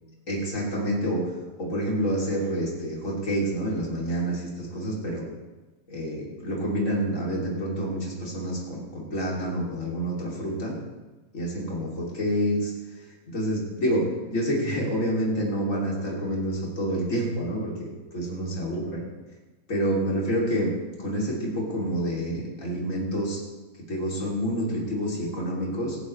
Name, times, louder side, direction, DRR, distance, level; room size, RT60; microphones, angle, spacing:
voice 1, 0.3-5.2 5.9-10.7 11.3-14.0 14.3-19.0 19.7-20.7 21.0-23.4 23.9-26.0, equal, 25° left, -4 dB, 1.9 m, -28 dB
17.0 x 16.5 x 3.2 m, 1.2 s
omnidirectional pair, 5.8 m